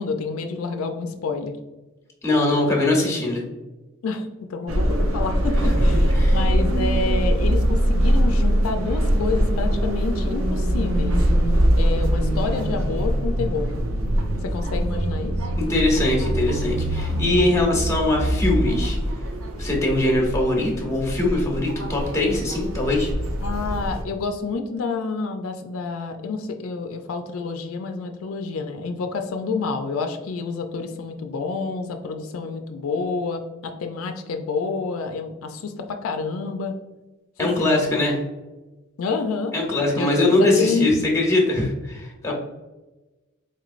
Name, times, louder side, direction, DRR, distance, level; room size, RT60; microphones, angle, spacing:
voice 1, 0.0-1.6 4.0-11.2 11.8-13.7 14.4-15.4 17.1-17.7 23.4-36.7 37.4-38.0 39.0-39.5 40.0-40.9 42.3-42.4, left 4 dB, 85° left, 6 dB, 0.4 m, -28 dB
voice 2, 2.2-3.4 6.2-6.4 15.6-19.0 19.6-23.1 37.4-38.1 39.5-42.3, left 2 dB, 15° left, -1 dB, 0.9 m, -21 dB
sound 1, 4.7-24.0, equal, 85° right, 0.6 m, -22 dB
4.3 x 3.0 x 2.5 m, 1.1 s
head